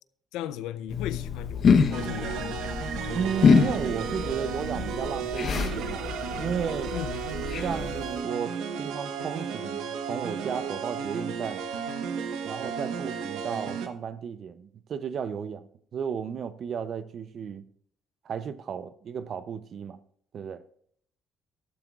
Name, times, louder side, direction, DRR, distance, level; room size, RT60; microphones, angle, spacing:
voice 1, 0.3-2.8 6.9-7.3, left 11 dB, 90° left, 0.5 m, -37 dB
sound 1, 0.9-8.2, left 5 dB, 55° left, 0.8 m, -26 dB
sound 2, 1.9-13.9, right 6 dB, 85° right, 1.0 m, -34 dB
voice 2, 3.1-6.9 7.6-11.7 12.4-17.7 18.2-20.0 20.3-20.6, right 7 dB, 60° right, 0.5 m, -34 dB
13.5 x 12.0 x 2.4 m
cardioid pair, 80°, 0 cm